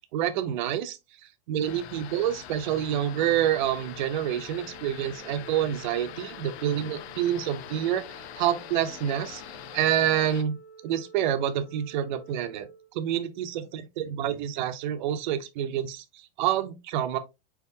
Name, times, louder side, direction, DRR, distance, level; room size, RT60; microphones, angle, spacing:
voice 1, 0.1-8.0 8.4-9.4 9.7-10.6 10.8-17.2, right 10 dB, 45° right, 0.7 m, -28 dB
sound 1, 1.6-10.4, left 11 dB, 80° left, 0.7 m, -43 dB
Organ, 2.5-13.6, right 5 dB, 20° left, 1.2 m, -51 dB
4.6 x 4.2 x 2.7 m
supercardioid pair, 170°, 32 cm